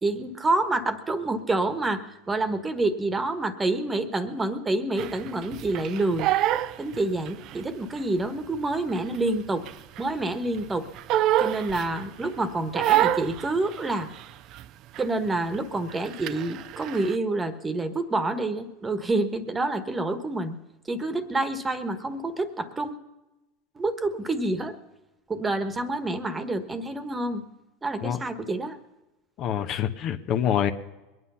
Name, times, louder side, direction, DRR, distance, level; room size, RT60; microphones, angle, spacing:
voice 1, 0.0-6.3 6.8-9.6 10.0-10.8 11.4-14.1 15.0-20.6 20.9-22.9 23.7-24.7 25.3-27.4 27.8-28.8, right 2 dB, 15° right, 10 dB, 1.3 m, -28 dB
Crying sobbing, 5.0-7.6 8.0-10.2 10.5-12.3 12.7-14.7 14.9-15.3 15.5-17.2, right 13 dB, 50° right, 0.5 m, -27 dB
voice 2, 29.4-30.7, left 9 dB, 50° left, 8 dB, 1.0 m, -26 dB
21.5 x 9.6 x 5.6 m, 1.0 s
hypercardioid pair, 105°, 0 cm